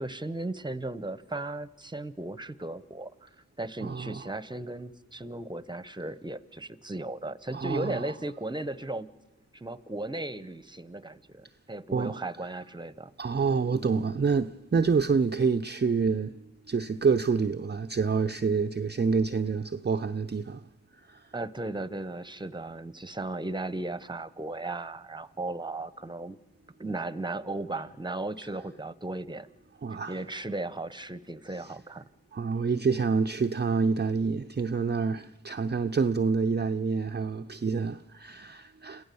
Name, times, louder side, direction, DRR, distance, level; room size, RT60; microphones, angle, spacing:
voice 1, 0.0-3.3 3.6-9.1 9.5-13.1 21.3-26.4 26.8-29.5 30.1-32.0, right 2 dB, 15° right, 1.1 m, -36 dB
voice 2, 3.8-4.2 7.5-8.1 11.9-12.2 13.2-16.3 16.7-20.6 21.1-21.2 29.8-30.2 32.3-39.0, right 5 dB, 35° right, 0.7 m, -27 dB
28.0 x 15.0 x 7.0 m
cardioid pair, 40°, 30 cm